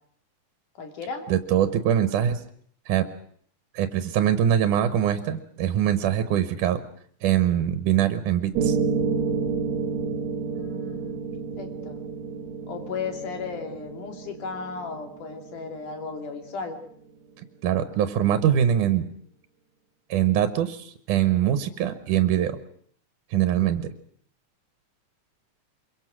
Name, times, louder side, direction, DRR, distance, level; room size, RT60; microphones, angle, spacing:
voice 1, 0.8-1.3 10.4-11.2 11.6-12.0 12.7-16.7, left 5 dB, 85° left, 5 dB, 4.1 m, -35 dB
voice 2, 1.3-2.4 2.9-3.1 3.7-6.8 7.2-8.8 17.6-19.1 20.1-22.6 23.3-23.9, right 10 dB, 85° right, 11 dB, 2.6 m, -23 dB
Piano, 8.5-16.6, right 5 dB, 65° right, 2.6 m, -30 dB
24.5 x 22.5 x 6.2 m, 0.62 s
omnidirectional pair, 3.5 m